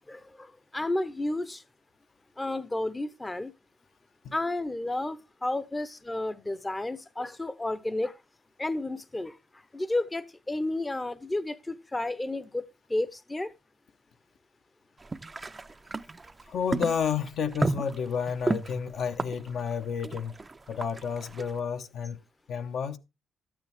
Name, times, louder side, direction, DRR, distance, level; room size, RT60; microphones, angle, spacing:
voice 1, 0.1-1.6 2.4-3.5 4.3-8.2 8.6-12.6 12.9-13.5, left 2 dB, 15° left, 0.7 m, -32 dB
sound 1, 15.0-21.5, right 3 dB, 25° right, 0.5 m, -33 dB
voice 2, 16.5-20.3 20.7-22.2 22.5-23.0, left 7 dB, 65° left, 1.0 m, -31 dB
12.0 x 9.0 x 3.4 m
cardioid pair, 90°, 0 cm